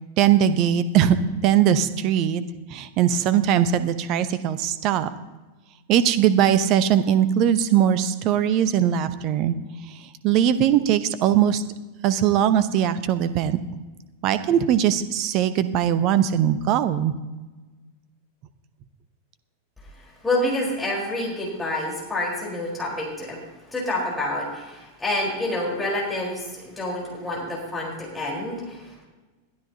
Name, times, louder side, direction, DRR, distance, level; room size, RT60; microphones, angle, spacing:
voice 1, 0.2-1.2 1.4-2.4 2.7-5.1 5.9-9.6 9.9-10.0 10.2-11.6 12.0-13.6 14.2-17.1, right 10 dB, 40° right, 13 dB, 0.9 m, -20 dB
voice 2, 20.2-23.4 23.7-29.1, left 1 dB, 10° left, -4 dB, 4.5 m, -28 dB
21.0 x 12.5 x 2.9 m, 1.2 s
figure-of-eight pair, 90°, 0 cm